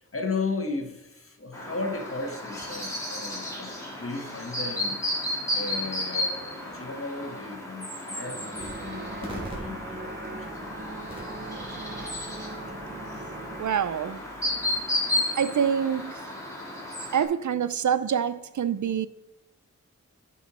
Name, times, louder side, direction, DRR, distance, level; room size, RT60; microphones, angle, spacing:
voice 1, 0.0-5.1 5.5-10.7 11.1-11.8, left 3 dB, 45° left, 1.4 m, -35 dB
Chirp tweet, 1.5-17.2, left 1 dB, 10° left, 2.6 m, -33 dB
sound 1, 8.2-13.6, right 2 dB, 35° right, 0.8 m, -40 dB
sound 2, 8.5-14.8, right 1 dB, 15° right, 2.8 m, -46 dB
voice 2, 13.6-14.2 15.1-16.2 17.1-19.1, right 8 dB, 75° right, 0.5 m, -26 dB
10.5 x 5.5 x 4.2 m
wide cardioid pair, 80°, 30 cm